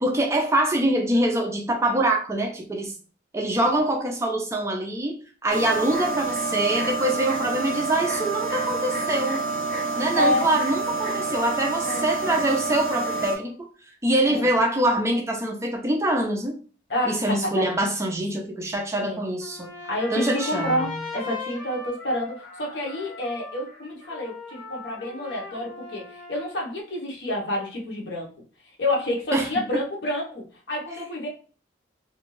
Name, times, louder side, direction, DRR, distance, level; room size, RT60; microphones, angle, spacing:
voice 1, 0.0-2.9 3.3-5.2 5.4-9.4 10.0-13.7 14.0-16.6 17.1-19.7 20.1-21.0 29.3-29.5, right 1 dB, 15° right, 0.4 m, -24 dB
sound 1, 5.5-13.4, right 3 dB, 5° left, 0.9 m, -28 dB
voice 2, 10.1-10.5 11.8-12.4 14.3-14.5 16.9-17.6 19.0-19.2 19.9-28.3 28.8-31.3, left 1 dB, 70° left, 0.8 m, -28 dB
Trumpet, 19.4-26.7, left 3 dB, 25° left, 1.1 m, -39 dB
2.5 x 2.2 x 3.0 m
head